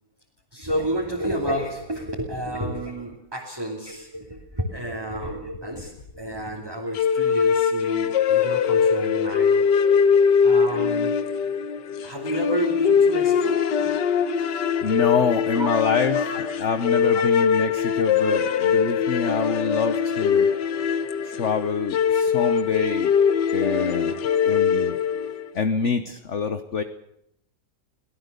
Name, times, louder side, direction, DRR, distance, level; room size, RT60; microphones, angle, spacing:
voice 1, 0.5-9.6 10.4-11.1 12.0-13.9 15.5-15.7 16.1-16.5 17.1-17.2, right 1 dB, 15° right, -1 dB, 2.7 m, -30 dB
sound 1, 7.0-25.5, left 6 dB, 75° left, 1.7 m, -22 dB
voice 2, 14.8-16.2 16.6-20.5 21.2-23.1 23.5-24.2 24.4-25.0 25.5-26.8, left 5 dB, 45° left, 9 dB, 1.2 m, -26 dB
23.5 x 17.5 x 6.8 m, 0.78 s
omnidirectional pair, 1.9 m